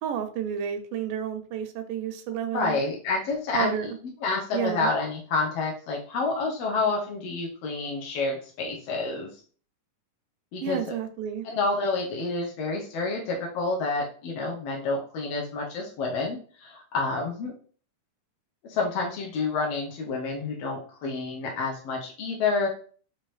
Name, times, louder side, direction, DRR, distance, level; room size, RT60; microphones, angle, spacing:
voice 1, 0.0-2.8 3.5-4.0 4.5-4.9 10.6-11.4, right 9 dB, 85° right, 8 dB, 2.1 m, -31 dB
voice 2, 2.5-3.9 4.2-9.3 10.5-10.8 11.4-17.5 18.6-22.7, left 3 dB, 75° left, -1 dB, 1.4 m, -29 dB
5.2 x 3.0 x 3.1 m, 0.43 s
omnidirectional pair, 3.8 m